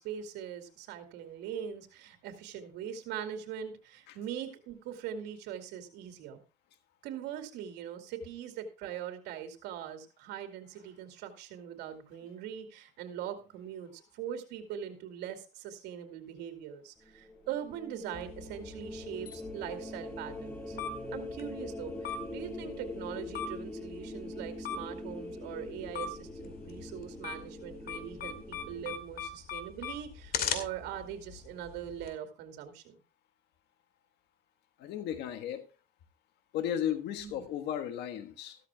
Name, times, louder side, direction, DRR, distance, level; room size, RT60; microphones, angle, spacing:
voice 1, 0.0-6.4 7.0-20.8 21.1-33.0 37.2-37.5, right 9 dB, 90° right, 7 dB, 2.6 m, -41 dB
sound 1, 17.0-29.0, left 1 dB, 10° left, 2.0 m, -43 dB
sound 2, 18.1-32.1, left 6 dB, 65° left, 2.4 m, -42 dB
voice 2, 34.8-35.6 36.5-38.6, left 10 dB, 85° left, 8 dB, 1.4 m, -34 dB
15.0 x 13.5 x 2.3 m, 0.31 s
cardioid pair, 110°, 17 cm